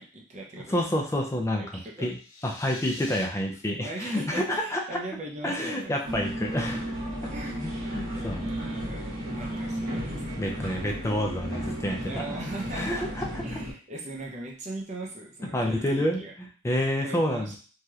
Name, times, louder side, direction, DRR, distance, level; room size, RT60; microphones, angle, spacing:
voice 1, 0.0-0.8 1.6-2.1 3.8-5.9 7.3-7.6 8.1-10.2 12.0-13.1 13.4-16.3 17.0-17.6, right 1 dB, 35° right, -1 dB, 0.6 m, -39 dB
voice 2, 0.7-2.2 2.4-5.0 5.4-6.9 7.6-8.5 10.4-12.4 12.7-13.4 15.5-17.6, left 1 dB, 15° left, 1 dB, 0.4 m, -29 dB
sound 1, 2.0-3.2, left 3 dB, 70° left, 0.9 m, -44 dB
sound 2, 6.0-13.7, equal, 75° right, 1.3 m, -34 dB
3.1 x 2.7 x 2.3 m, 0.40 s
head